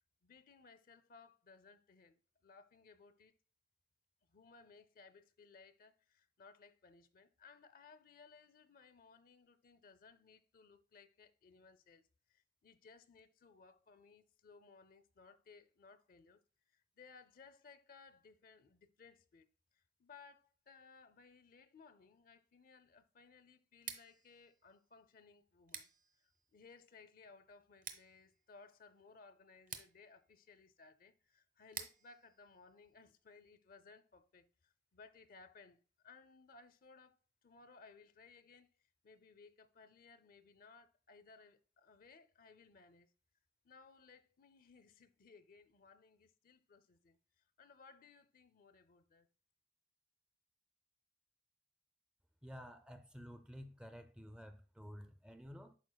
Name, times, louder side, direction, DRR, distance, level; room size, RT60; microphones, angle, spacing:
voice 1, 0.2-3.4 4.3-19.5 19.7-25.9 26.2-37.2 37.4-43.1 43.6-49.3, left 4 dB, 50° left, 0.5 m, -62 dB
Scissors, 23.7-33.5, right 7 dB, 50° right, 0.8 m, -55 dB
voice 2, 52.4-55.8, equal, 5° right, 0.4 m, -52 dB
11.5 x 4.4 x 2.2 m
head